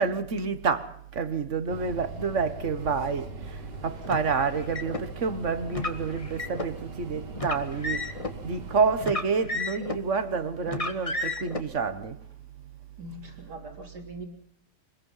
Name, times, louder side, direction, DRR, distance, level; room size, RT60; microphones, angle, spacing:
voice 1, 0.0-12.2, right 5 dB, 45° right, 1.7 m, -29 dB
sound 1, 1.7-9.1, right 2 dB, 90° right, 2.5 m, -41 dB
Car, 4.0-5.0 5.7-6.7 7.3-8.3 9.0-10.1 10.7-11.6, left 2 dB, 20° left, 1.6 m, -32 dB
voice 2, 13.0-14.3, right 1 dB, 75° right, 4.0 m, -41 dB
25.5 x 20.5 x 5.7 m
omnidirectional pair, 1.8 m